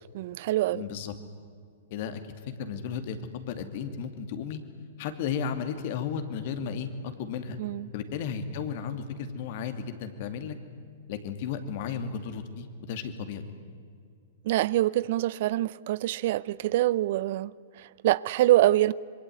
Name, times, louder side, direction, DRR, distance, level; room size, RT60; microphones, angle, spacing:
voice 1, 0.1-0.8 7.6-7.9 14.4-18.9, right 15 dB, 55° right, 0.6 m, -25 dB
voice 2, 0.7-1.1 1.9-4.6 5.0-7.6 7.9-10.6 11.1-13.4, left 7 dB, 55° left, 2.6 m, -34 dB
26.0 x 22.5 x 9.5 m
hypercardioid pair, 115°, 0 cm